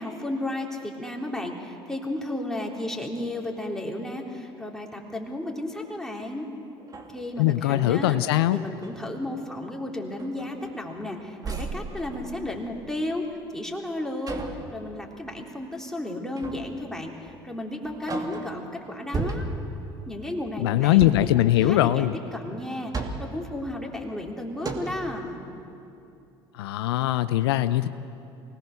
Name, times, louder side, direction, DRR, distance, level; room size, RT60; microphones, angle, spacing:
voice 1, 0.0-6.5 7.1-8.2 8.5-13.2 13.5-14.4 14.7-17.1 17.4-19.4 20.1-22.1 22.3-25.4, left 1 dB, 5° left, 0 dB, 3.7 m, -33 dB
sound 1, 6.2-6.3 6.8-8.0 8.5-9.0 9.5-9.7 10.1-11.0 11.4-12.9 14.3-14.7 16.4-16.8 17.3-17.4 17.8-18.7 19.1-19.8 20.9-21.4 22.6-23.4 24.2-24.3 24.6-25.1, right 3 dB, 30° right, 2.5 m, -35 dB
voice 2, 7.4-8.6 20.6-22.1 26.5-27.9, left 14 dB, 80° left, 12 dB, 0.6 m, -21 dB
24.5 x 19.0 x 6.8 m, 2.7 s
hypercardioid pair, 70°, 13 cm